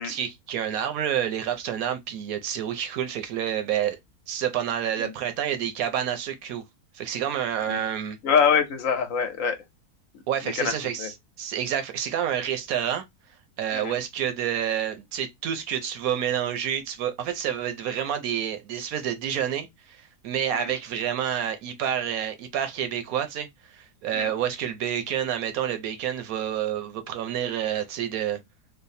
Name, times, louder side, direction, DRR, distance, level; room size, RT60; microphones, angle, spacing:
voice 1, 0.0-4.0 4.3-6.6 6.9-8.2 10.3-11.1 11.4-13.0 13.6-23.5 23.7-28.4, right 9 dB, 75° right, 1.1 m, -28 dB
voice 2, 8.2-9.6 10.1-11.1 13.7-14.0 20.5-20.7 24.1-24.3, left 6 dB, 60° left, 1.1 m, -25 dB
3.2 x 2.0 x 4.0 m
omnidirectional pair, 1.7 m